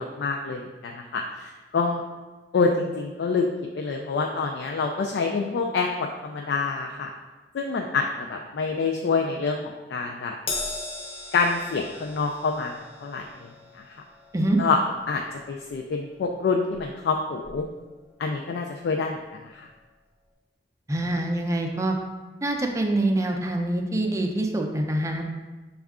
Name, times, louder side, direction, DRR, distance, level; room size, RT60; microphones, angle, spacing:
voice 1, 0.0-2.0 2.5-3.5 3.8-7.1 7.5-10.3 11.3-12.7 13.0-13.2 14.6-14.8 15.1-15.2 15.5-17.7 18.2-19.1 19.5-19.7, left 4 dB, 65° left, 2 dB, 0.3 m, -26 dB
Crash cymbal, 10.5-17.1 17.4-17.7 18.7-18.8, left 3 dB, 35° left, 0.7 m, -39 dB
voice 2, 20.9-21.9 22.4-25.2, right 1 dB, 15° right, 2 dB, 0.4 m, -25 dB
6.3 x 2.4 x 3.5 m, 1.2 s
head